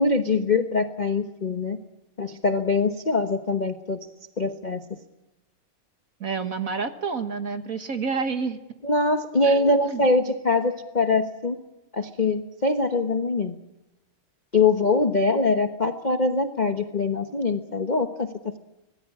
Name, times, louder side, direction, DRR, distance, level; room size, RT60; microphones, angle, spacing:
voice 1, 0.0-1.8 2.2-4.0 4.4-4.8 8.8-11.6 11.9-13.6 14.5-18.6, left 3 dB, 35° left, 6 dB, 0.7 m, -23 dB
voice 2, 6.2-8.6 9.4-10.0, right 5 dB, 45° right, 8 dB, 1.5 m, -29 dB
25.0 x 19.0 x 8.5 m, 0.98 s
omnidirectional pair, 2.4 m